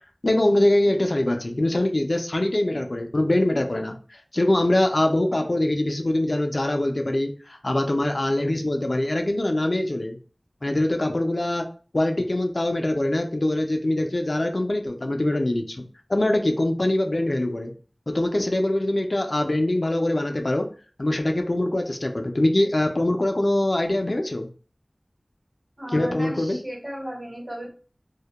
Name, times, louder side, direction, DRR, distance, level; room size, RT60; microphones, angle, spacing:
voice 1, 0.2-10.2 10.6-11.7 11.9-15.8 16.1-17.7 18.1-20.7 21.0-24.5 25.9-26.6, left 1 dB, 60° left, 4 dB, 0.3 m, -23 dB
voice 2, 25.8-27.7, equal, 40° right, -1 dB, 1.0 m, -35 dB
2.2 x 2.0 x 2.8 m, 0.39 s
wide cardioid pair, 45°, 0 cm